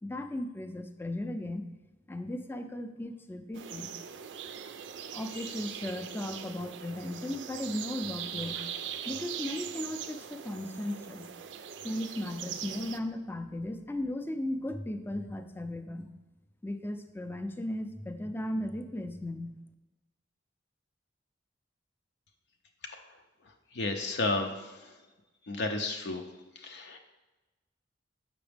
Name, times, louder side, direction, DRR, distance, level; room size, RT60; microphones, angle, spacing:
voice 1, 0.0-1.6 2.1-3.9 5.1-8.6 9.1-11.3 11.8-16.1 16.6-19.5, left 1 dB, 10° left, 7 dB, 0.4 m, -36 dB
sound 1, 3.5-13.0, right 8 dB, 70° right, 0.4 m, -41 dB
voice 2, 23.7-24.7 25.5-26.2 26.6-27.0, left 2 dB, 65° left, 3 dB, 0.6 m, -32 dB
7.1 x 5.9 x 3.4 m, 1.1 s
head